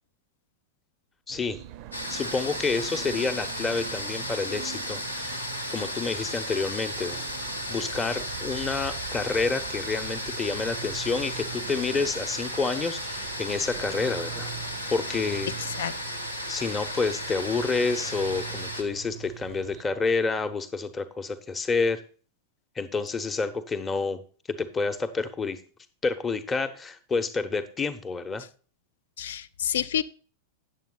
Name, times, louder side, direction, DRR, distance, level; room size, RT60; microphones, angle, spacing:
voice 1, 1.3-1.6 2.1-7.2 7.7-14.5 14.9-15.5 16.5-22.0 22.8-24.2 24.5-25.6 26.0-28.4, left 4 dB, 20° left, 9 dB, 0.9 m, -29 dB
sound 1, 1.3-19.8, right 12 dB, 45° right, 0.5 m, -43 dB
sound 2, 1.9-18.8, equal, 90° left, 1.4 m, -35 dB
voice 2, 15.6-16.2 29.2-30.0, left 9 dB, 60° left, 18 dB, 0.4 m, -29 dB
9.1 x 7.3 x 3.9 m, 0.40 s
figure-of-eight pair, 90°, 0 cm